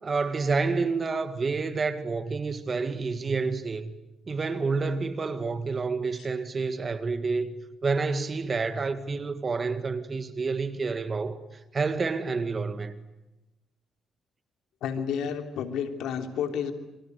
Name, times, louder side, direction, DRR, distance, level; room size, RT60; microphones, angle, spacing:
voice 1, 0.0-3.9 4.3-7.5 7.8-11.4 11.7-13.0, right 4 dB, 35° right, 2.0 m, -29 dB
voice 2, 14.8-16.7, left 7 dB, 85° left, 3.2 m, -30 dB
28.0 x 25.0 x 8.2 m
cardioid pair, 90°, 0 cm